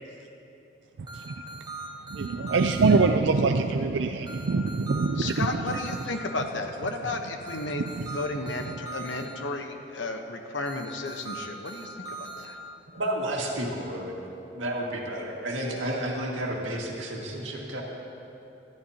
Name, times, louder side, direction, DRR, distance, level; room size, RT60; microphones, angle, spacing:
sound 1, 1.1-2.9 4.3-6.1 7.5-9.3 10.6-12.5, right 3 dB, 20° right, 1.2 m, -40 dB
voice 1, 1.1-1.5 2.1-5.8 7.8-8.2 8.7-8.8, right 4 dB, 75° right, 5 dB, 0.4 m, -25 dB
voice 2, 5.2-12.5, left 2 dB, 80° left, 4 dB, 1.1 m, -33 dB
voice 3, 12.9-14.2 14.5-17.8, right 1 dB, 90° right, -2 dB, 2.1 m, -31 dB
20.0 x 13.0 x 2.9 m, 2.9 s
head